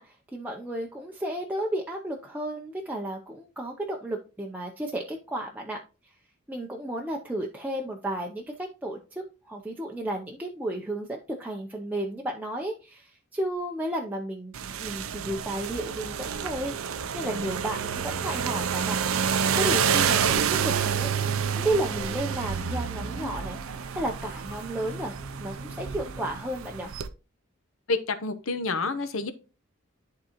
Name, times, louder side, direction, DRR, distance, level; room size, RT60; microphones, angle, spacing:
voice 1, 0.0-6.1 6.5-19.0 19.3-23.6 23.9-26.9, right 1 dB, 10° right, 0 dB, 0.6 m, -33 dB
sound 1, 14.5-27.1, right 7 dB, 75° right, 0.5 m, -29 dB
sound 2, 21.2-26.4, left 1 dB, 20° left, 2.0 m, -46 dB
voice 2, 27.9-29.3, left 3 dB, 70° left, 11 dB, 0.8 m, -28 dB
11.0 x 3.7 x 3.0 m, 0.32 s
head